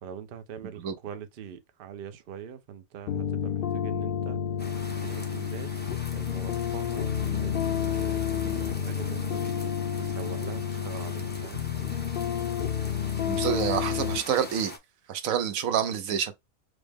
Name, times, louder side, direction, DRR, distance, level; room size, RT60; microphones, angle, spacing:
voice 1, 0.0-4.4 5.0-7.1 7.4-11.7, right 7 dB, 55° right, 0.7 m, -43 dB
sound 1, 3.1-14.2, left 8 dB, 55° left, 0.7 m, -30 dB
sound 2, 4.6-14.8, left 1 dB, 15° left, 0.4 m, -43 dB
voice 2, 13.3-14.7 15.1-16.3, right 8 dB, 80° right, 1.1 m, -27 dB
4.8 x 2.1 x 3.4 m
omnidirectional pair, 1.4 m